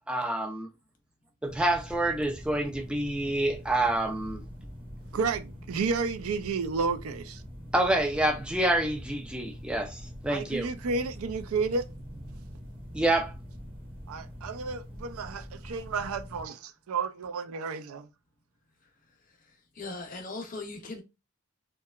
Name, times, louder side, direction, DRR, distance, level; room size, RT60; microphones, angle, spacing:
voice 1, 0.1-0.7 1.4-4.4 7.7-10.7 12.9-13.3, right 1 dB, 5° right, 0.3 m, -27 dB
sound 1, 1.4-16.5, equal, 25° right, 0.7 m, -44 dB
voice 2, 5.1-7.4 10.3-11.8 14.1-18.1, right 4 dB, 80° right, 0.4 m, -31 dB
voice 3, 19.3-21.0, left 3 dB, 40° left, 0.6 m, -40 dB
2.8 x 2.2 x 2.3 m
head